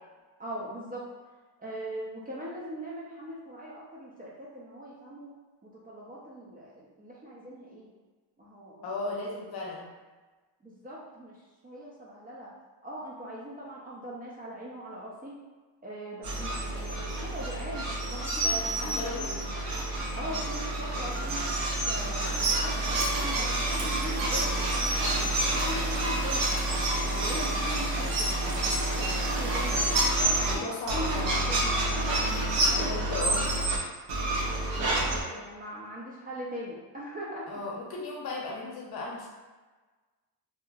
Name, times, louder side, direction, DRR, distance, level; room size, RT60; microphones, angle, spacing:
voice 1, 0.4-1.0 1.6-5.3 5.6-7.9 8.4-9.2 10.6-12.5 12.8-15.4 15.8-19.3 20.1-21.5 21.9-22.3 22.6-26.4 27.1-29.7 30.4-31.7 32.5-32.9 33.2-33.3 34.8-37.5, right 1 dB, 20° right, -6 dB, 0.4 m, -40 dB
voice 2, 8.8-9.9 18.4-19.4 27.1-27.8 30.3-31.6 32.7-33.5 35.3-35.4 37.5-39.3, left 2 dB, 60° left, -2 dB, 0.7 m, -36 dB
sound 1, 16.2-30.6 30.9-33.8 34.1-35.2, right 1 dB, 90° right, 0.8 m, -28 dB
2.9 x 2.5 x 2.3 m, 1.3 s
cardioid pair, 135°, 43 cm